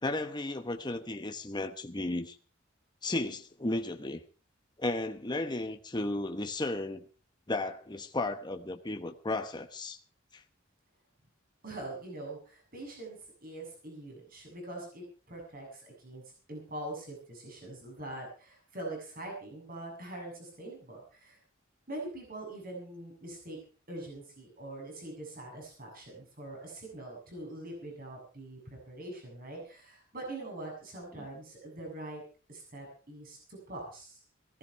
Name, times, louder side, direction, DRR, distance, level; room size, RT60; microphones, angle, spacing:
voice 1, 0.0-2.4 3.0-4.2 4.8-7.0 7.5-10.0 10.3-10.4 31.1-31.3, left 2 dB, 20° left, 1.1 m, -34 dB
voice 2, 11.6-16.2 16.5-21.4 21.9-23.6 23.9-32.2 32.5-34.2, right 2 dB, 45° right, 7.4 m, -43 dB
16.5 x 14.5 x 4.7 m
head